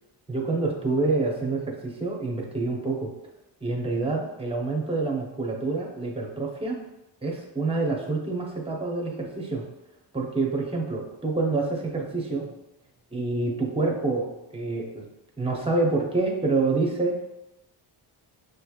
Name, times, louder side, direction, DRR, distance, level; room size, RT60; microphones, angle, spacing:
voice 1, 0.3-3.1 3.6-6.8 7.2-9.6 10.1-12.5 13.1-15.1 15.4-17.2, right 3 dB, 15° right, -1 dB, 0.9 m, -27 dB
6.5 x 3.2 x 2.4 m, 0.91 s
wide cardioid pair, 110°, 43 cm